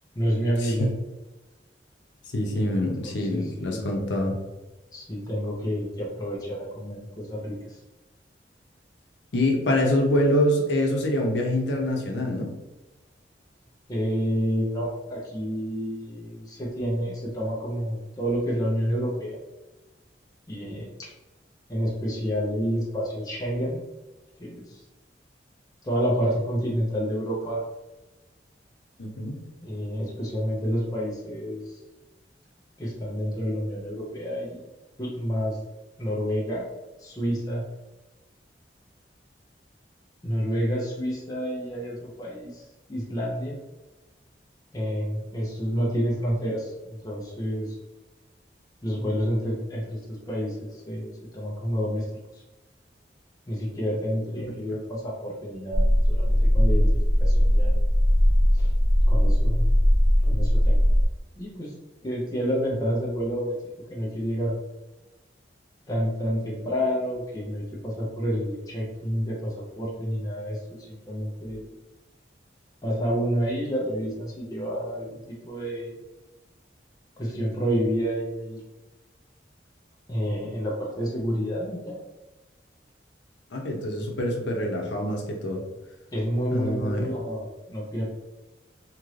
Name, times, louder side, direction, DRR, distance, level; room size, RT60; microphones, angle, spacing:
voice 1, 0.2-0.9 3.0-3.9 4.9-7.8 13.9-19.4 20.5-21.1 21.7-23.8 24.4-24.8 25.8-27.6 29.6-31.8 32.8-34.6 35.0-35.6 36.0-36.7 37.0-37.6 40.2-42.6 42.9-43.6 44.7-47.8 48.8-52.1 53.5-56.9 57.2-57.8 58.5-58.7 59.1-59.7 60.2-60.8 61.4-61.7 62.0-63.6 63.9-64.6 65.9-71.7 72.8-75.2 75.4-75.9 77.2-78.6 80.1-82.0 86.1-88.1, equal, 20° left, -5 dB, 0.6 m, -29 dB
voice 2, 2.3-4.3 9.3-12.5 29.0-29.4 83.5-85.6 86.5-87.1, left 1 dB, 85° left, 1 dB, 0.7 m, -25 dB
sound 1, 55.7-61.1, equal, 55° left, 1.0 m, -19 dB
2.9 x 2.5 x 3.1 m, 1.1 s
head